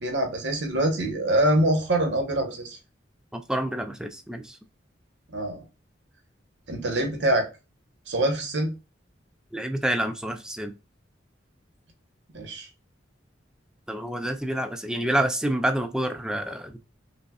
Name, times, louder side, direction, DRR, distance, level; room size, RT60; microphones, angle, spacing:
voice 1, 0.0-2.8 5.3-5.6 6.7-7.5 8.1-8.7 12.3-12.7, right 1 dB, 65° right, 3 dB, 1.0 m, -24 dB
voice 2, 3.3-4.6 9.5-10.7 13.9-16.8, right 1 dB, 5° right, 6 dB, 0.4 m, -28 dB
5.2 x 2.1 x 2.3 m, 0.29 s
head